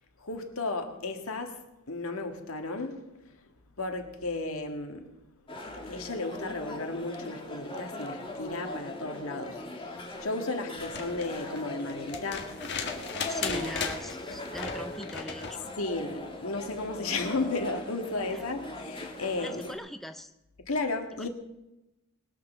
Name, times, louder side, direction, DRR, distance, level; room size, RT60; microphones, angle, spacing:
voice 1, 0.2-3.3 3.8-5.1 5.6-12.5 12.9-13.7 15.8-19.7 20.6-21.3, left 3 dB, 80° left, 1.8 m, -34 dB
sound 1, 5.5-19.7, left 1 dB, 25° left, 1.7 m, -40 dB
sound 2, 10.8-15.6 17.2-17.3, left 5 dB, 55° left, 1.7 m, -37 dB
voice 2, 13.3-15.7 18.3-18.4 19.4-20.3 21.2-21.3, equal, ahead, 0.4 m, -40 dB
20.0 x 6.8 x 6.7 m
head